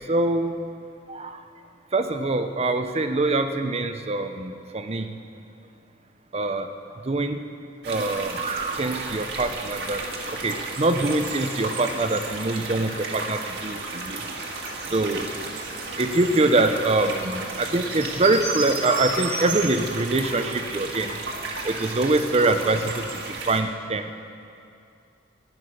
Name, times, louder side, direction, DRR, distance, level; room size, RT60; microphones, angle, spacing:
voice 1, 0.1-0.7 1.1-1.4 1.9-5.1 6.3-6.7 7.1-7.4 7.9-10.0 10.4-14.2 14.9-15.3 16.0-21.1 21.6-22.9 23.5-24.2, right 2 dB, 35° right, 8 dB, 0.6 m, -24 dB
sound 1, 7.8-23.6, right 3 dB, 60° right, 1.7 m, -33 dB
15.0 x 10.5 x 6.4 m, 2.5 s
head